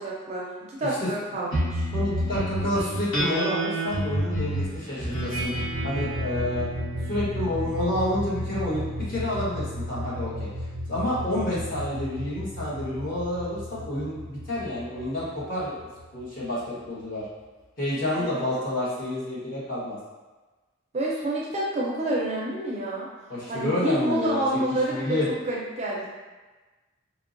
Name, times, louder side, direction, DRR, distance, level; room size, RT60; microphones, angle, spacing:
voice 1, 0.0-1.9 18.2-18.4 20.9-23.1 23.5-25.2 25.4-26.1, right 1 dB, 30° right, -5 dB, 0.4 m, -28 dB
sound 1, 1.5-16.2, equal, 80° left, 1.1 m, -31 dB
voice 2, 1.9-6.7 7.1-10.5 10.9-15.8 16.1-17.2 17.8-20.0 23.3-24.4 24.9-25.3, left 1 dB, 45° left, -9 dB, 1.1 m, -29 dB
4.4 x 2.0 x 2.5 m, 1.2 s
head